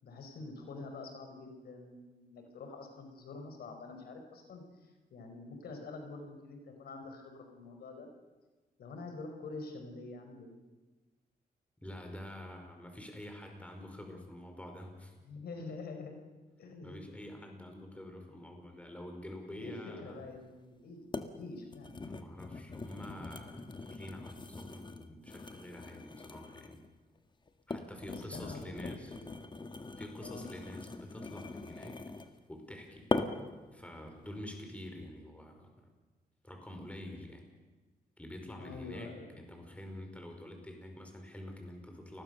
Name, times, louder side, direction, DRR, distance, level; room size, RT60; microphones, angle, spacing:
voice 1, 0.0-8.1 8.8-10.5 15.2-16.2 16.6-17.1 19.5-22.0 28.0-29.3 30.2-30.5 38.6-39.4, left 3 dB, 85° left, 5 dB, 5.0 m, -46 dB
voice 2, 11.8-15.1 16.8-20.2 22.0-26.8 27.7-29.2 30.0-32.0 32.5-33.1 33.7-35.7 36.4-37.5 38.2-42.2, left 1 dB, 10° left, 3 dB, 5.4 m, -47 dB
sound 1, 20.3-20.4 21.1-21.3 21.7-26.9 27.5-32.4 33.1-33.6 34.1-34.3, left 3 dB, 30° left, 1.7 m, -41 dB
29.5 x 21.0 x 6.9 m, 1.2 s
cardioid pair, 100°, 16 cm